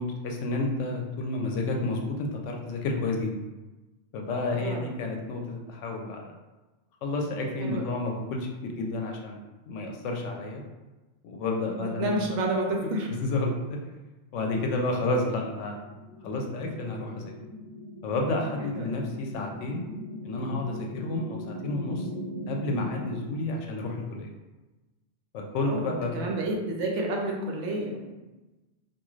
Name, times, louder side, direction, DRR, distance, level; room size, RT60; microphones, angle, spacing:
voice 1, 0.0-3.3 4.1-6.3 7.0-9.4 9.7-10.6 11.2-12.4 13.2-13.8 14.3-15.8 16.2-17.3 18.0-19.8 20.2-22.1 22.5-24.3 25.3-26.3, left 2 dB, 80° left, 1 dB, 0.9 m, -30 dB
voice 2, 4.5-4.9 7.6-7.8 11.8-12.6 12.9-13.1 18.7-18.8 25.6-28.1, right 2 dB, 75° right, 0 dB, 0.9 m, -30 dB
sound 1, 15.4-23.1, equal, 50° left, 1.1 m, -40 dB
3.0 x 2.4 x 2.4 m, 1.1 s
omnidirectional pair, 1.2 m